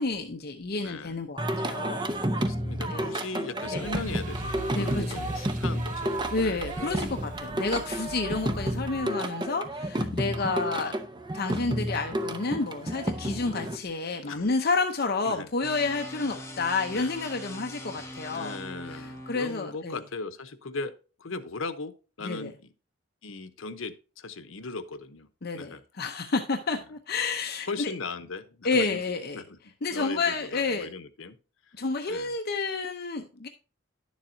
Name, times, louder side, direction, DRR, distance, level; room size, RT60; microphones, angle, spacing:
voice 1, 0.0-2.0 2.9-3.1 3.7-3.9 4.7-5.0 6.3-10.9 11.3-18.6 18.9-20.0 22.2-22.5 25.4-27.9 28.6-29.4 29.8-30.9 31.8-33.5, left 3 dB, 50° left, 5 dB, 0.7 m, -30 dB
voice 2, 0.8-1.2 2.3-6.7 7.6-7.9 9.1-9.3 10.8-11.0 12.2-12.3 14.2-14.5 15.2-15.5 16.9-17.1 18.3-20.9 21.2-21.9 22.2-22.7 23.2-25.3 25.5-25.8 27.7-29.0 29.3-29.6 29.9-31.4 32.1-32.3, left 3 dB, 85° left, 12 dB, 0.9 m, -38 dB
Singing, 1.4-13.8, right 1 dB, 25° right, 0.8 m, -31 dB
sound 1, 3.8-9.1, right 4 dB, 40° right, 0.4 m, -42 dB
sound 2, 15.6-19.6, left 1 dB, 15° left, 1.4 m, -42 dB
11.0 x 7.3 x 2.7 m, 0.34 s
head